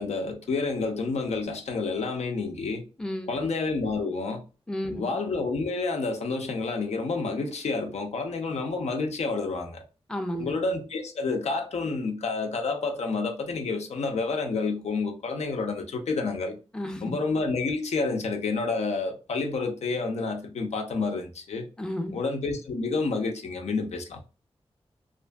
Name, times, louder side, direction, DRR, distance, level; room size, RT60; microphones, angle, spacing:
voice 1, 0.0-2.8 3.3-4.4 4.9-9.8 10.4-16.6 17.0-21.7 22.1-24.2, left 3 dB, 90° left, 0.6 m, -29 dB
voice 2, 3.0-3.5 4.7-5.1 10.1-10.5 16.7-17.2 21.8-22.2, left 1 dB, 5° left, 0.4 m, -32 dB
2.6 x 2.5 x 2.2 m
wide cardioid pair, 120°, 11 cm